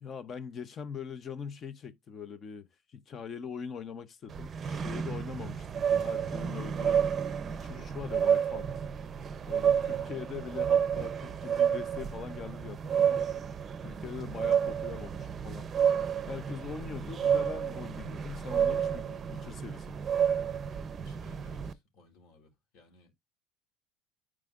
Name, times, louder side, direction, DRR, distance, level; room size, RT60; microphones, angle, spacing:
voice 1, 0.0-7.0 7.5-8.8 9.5-13.3 13.8-15.7 16.2-20.0, left 6 dB, 35° left, 0.8 m, -42 dB
sound 1, 4.3-21.7, right 8 dB, 30° right, 0.7 m, -30 dB
voice 2, 9.7-10.2 20.9-23.1, left 3 dB, 60° left, 4.0 m, -58 dB
9.5 x 4.8 x 2.5 m
cardioid pair, 130°, 0 cm